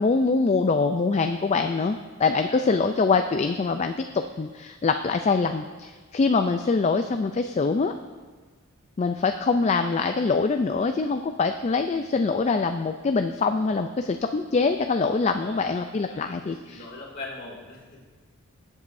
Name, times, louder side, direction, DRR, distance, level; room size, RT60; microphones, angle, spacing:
voice 1, 0.0-7.9 9.0-16.8, left 4 dB, 30° left, 7 dB, 0.3 m, -24 dB
voice 2, 2.2-2.6 15.2-15.7 16.1-18.0, left 2 dB, 50° left, -4 dB, 2.7 m, -41 dB
20.5 x 8.2 x 2.6 m, 1.4 s
head